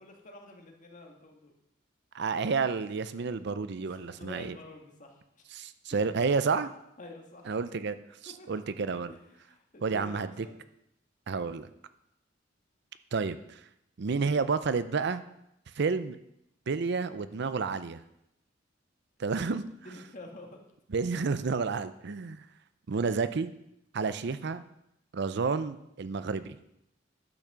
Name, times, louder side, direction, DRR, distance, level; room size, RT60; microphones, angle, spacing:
voice 1, 0.0-1.5 3.8-5.5 7.0-7.5 8.3-8.6 9.1-10.6 19.8-20.5, left 2 dB, 45° left, 2 dB, 1.8 m, -49 dB
voice 2, 2.1-4.6 5.5-6.7 7.5-8.0 8.2-9.1 9.8-10.3 11.3-11.7 13.1-13.6 14.0-15.2 15.8-16.2 16.7-18.0 19.2-19.7 20.9-22.4 22.9-23.5 23.9-24.6 25.1-26.6, right 4 dB, 60° right, 13 dB, 0.5 m, -30 dB
10.5 x 6.0 x 6.8 m, 0.81 s
head